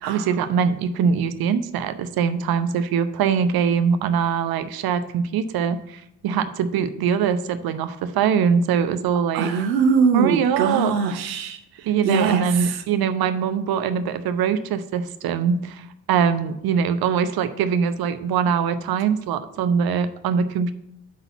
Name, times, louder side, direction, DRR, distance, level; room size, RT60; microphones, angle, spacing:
voice 1, 0.1-9.5 10.1-10.9 11.8-20.7, right 7 dB, 50° right, 11 dB, 0.8 m, -22 dB
voice 2, 9.3-12.8, right 5 dB, 80° right, 7 dB, 0.6 m, -22 dB
8.3 x 4.0 x 6.9 m, 0.79 s
figure-of-eight pair, 40°, 48 cm